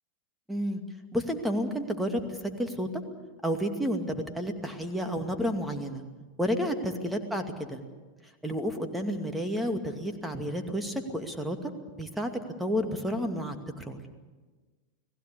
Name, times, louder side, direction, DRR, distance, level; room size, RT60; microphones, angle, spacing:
voice 1, 0.5-0.8 1.1-3.0 3.4-6.0 6.4-7.8 8.4-11.7 12.0-12.3 12.6-14.0, equal, 5° right, 5 dB, 2.4 m, -31 dB
30.0 x 18.5 x 6.9 m, 1.3 s
figure-of-eight pair, 90°, 0 cm